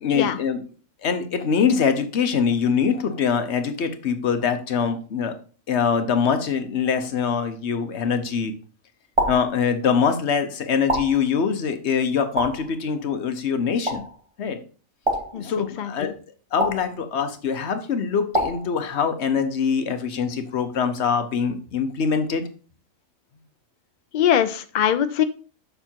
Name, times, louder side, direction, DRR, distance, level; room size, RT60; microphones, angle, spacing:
voice 1, 0.0-0.6 1.0-5.3 5.7-8.5 9.3-14.0 14.4-14.6 15.3-16.1 16.5-22.5, left 6 dB, 60° left, 9 dB, 1.1 m, -23 dB
sound 1, 9.2-9.6 10.9-11.3 12.4-12.7 13.9-14.2 15.1-15.5 16.6-17.0 18.3-18.7, right 1 dB, 25° right, 1.1 m, -25 dB
voice 2, 15.3-16.1 24.1-25.2, left 9 dB, 85° left, 11 dB, 0.4 m, -22 dB
6.8 x 6.7 x 2.9 m, 0.38 s
omnidirectional pair, 1.4 m